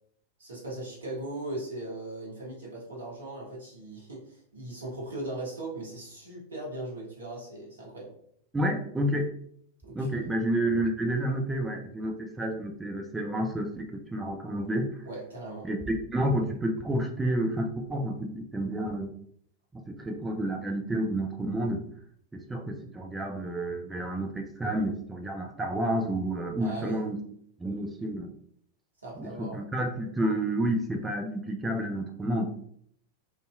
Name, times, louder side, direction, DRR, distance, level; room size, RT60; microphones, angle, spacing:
voice 1, 0.4-8.1 9.8-10.3 15.0-15.7 26.6-27.1 29.0-29.6, right 2 dB, 70° right, -4 dB, 0.8 m, -39 dB
voice 2, 8.5-9.3 9.9-15.1 15.6-19.1 19.7-21.8 22.3-27.2 27.6-28.3 29.2-32.5, right 1 dB, 10° right, 2 dB, 0.3 m, -30 dB
2.6 x 2.4 x 2.3 m, 0.66 s
figure-of-eight pair, 90°, 0 cm